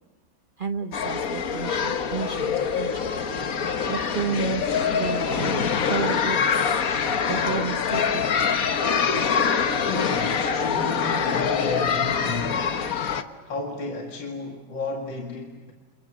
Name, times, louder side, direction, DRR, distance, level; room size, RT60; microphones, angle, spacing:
voice 1, 0.6-2.9 3.6-6.4 7.3-8.6, right 6 dB, 45° right, 0.6 m, -31 dB
sound 1, 0.9-13.2, left 6 dB, 50° left, 1.5 m, -24 dB
voice 2, 9.9-12.7 13.5-15.7, left 3 dB, 70° left, 2.8 m, -32 dB
29.5 x 28.5 x 6.3 m
omnidirectional pair, 2.2 m